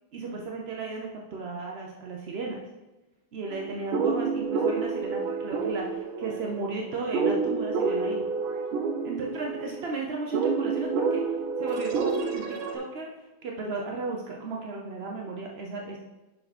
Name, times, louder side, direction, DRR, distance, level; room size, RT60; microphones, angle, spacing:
voice 1, 0.1-2.6 3.3-8.3 9.0-11.2 11.6-12.4 12.7-13.1 13.4-16.0, right 3 dB, 65° right, -1 dB, 0.6 m, -35 dB
sound 1, 3.5-12.8, right 4 dB, 80° right, 1.6 m, -29 dB
6.8 x 5.7 x 4.2 m, 1.1 s
omnidirectional pair, 2.2 m